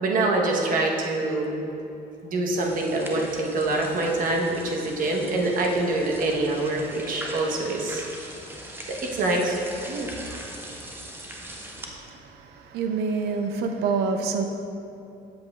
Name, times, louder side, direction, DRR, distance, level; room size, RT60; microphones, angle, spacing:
voice 1, 0.0-1.5 2.2-8.0 8.9-9.6 9.9-10.1, right 2 dB, 55° right, 0 dB, 1.0 m, -25 dB
sound 1, 2.6-11.9, right 1 dB, 15° right, 0.7 m, -40 dB
voice 2, 11.8-14.4, right 5 dB, 75° right, 5 dB, 0.5 m, -27 dB
7.5 x 7.4 x 2.4 m, 2.8 s
cardioid pair, 110°, 17 cm